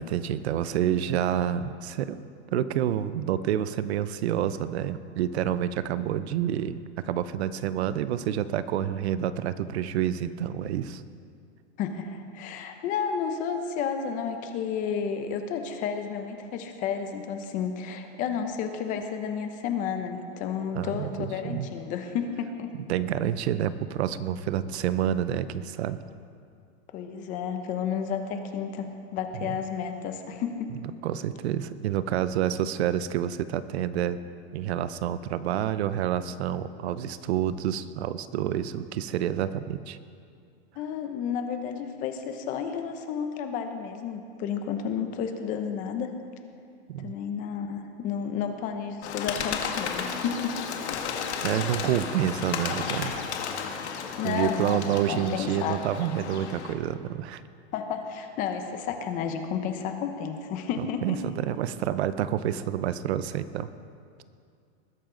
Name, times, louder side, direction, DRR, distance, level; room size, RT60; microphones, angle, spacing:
voice 1, 0.0-2.2 2.5-11.0 20.7-21.7 22.9-26.0 31.0-34.2 34.5-40.0 46.9-47.1 51.4-53.1 54.2-57.4 60.8-63.7, right 10 dB, 75° right, 14 dB, 0.7 m, -28 dB
voice 2, 11.8-22.7 26.9-30.7 40.8-46.1 47.0-50.5 54.2-55.8 57.7-61.2, left 7 dB, 25° left, 6 dB, 0.7 m, -31 dB
Bird, 49.0-56.7, left 6 dB, 85° left, 1.7 m, -33 dB
20.0 x 10.5 x 3.9 m, 2.3 s
supercardioid pair, 170°, 33 cm